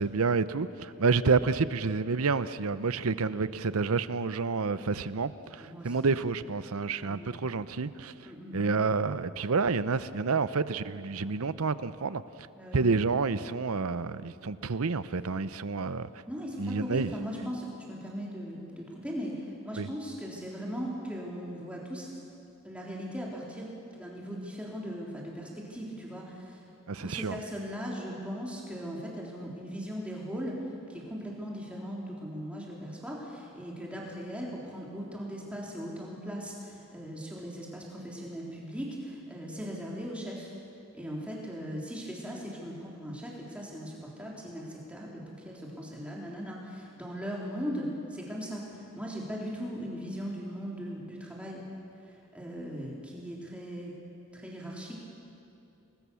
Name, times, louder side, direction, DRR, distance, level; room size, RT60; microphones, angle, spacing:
voice 1, 0.0-8.1 8.5-12.2 12.7-16.2 16.6-17.1 19.8-19.9 26.9-27.4, right 4 dB, 85° right, 0.7 m, -29 dB
voice 2, 5.6-6.0 7.0-7.3 8.3-8.6 12.6-12.8 16.3-22.1 22.6-26.6 26.9-30.6 30.9-40.5 40.9-51.6 52.0-53.9 54.3-55.0, equal, 5° right, 3.6 m, -39 dB
28.0 x 20.0 x 7.0 m
head